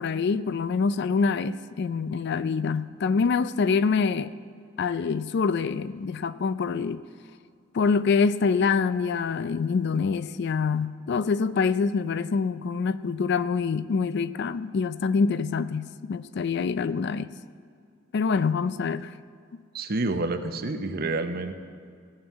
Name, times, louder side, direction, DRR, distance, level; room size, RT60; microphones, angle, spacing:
voice 1, 0.0-4.3 4.8-7.0 7.7-17.3 18.1-19.1 19.5-19.6, left 5 dB, 55° left, 15 dB, 0.4 m, -25 dB
voice 2, 19.7-21.5, right 2 dB, 50° right, 8 dB, 0.8 m, -28 dB
16.0 x 5.5 x 8.2 m, 2.3 s
head